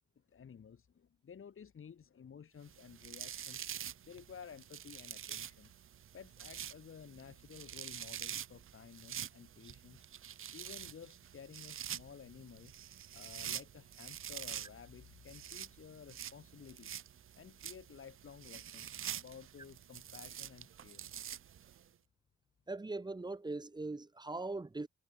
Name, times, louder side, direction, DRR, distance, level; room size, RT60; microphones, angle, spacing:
voice 1, 0.2-3.7 4.0-5.7 6.1-10.0 10.5-12.7 13.1-16.9 17.3-21.1, left 7 dB, 45° left, 4.7 m, -54 dB
sound 1, 2.7-21.8, right 9 dB, 45° right, 0.7 m, -47 dB
voice 2, 22.7-24.9, right 2 dB, 15° right, 1.3 m, -40 dB
cardioid pair, 135°, 29 cm